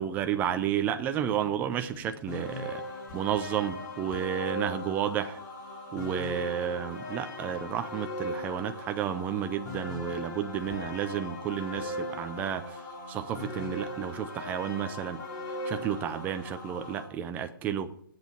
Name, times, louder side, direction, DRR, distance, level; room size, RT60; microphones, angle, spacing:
voice 1, 0.0-2.8 3.1-5.4 5.9-12.8 13.1-15.2 15.7-17.9, right 9 dB, 15° right, 8 dB, 0.6 m, -31 dB
Human voice, 1.9-2.2 3.1-3.5 4.1-4.4 6.0-6.3 7.5-7.8 9.0-9.3 10.7-11.0 11.7-12.0 12.4-12.7, left 4 dB, 30° left, 1.2 m, -50 dB
sound 1, 2.3-17.0, left 1 dB, 50° left, 3.7 m, -39 dB
7.9 x 7.3 x 8.4 m, 0.65 s
hypercardioid pair, 155°, 12 cm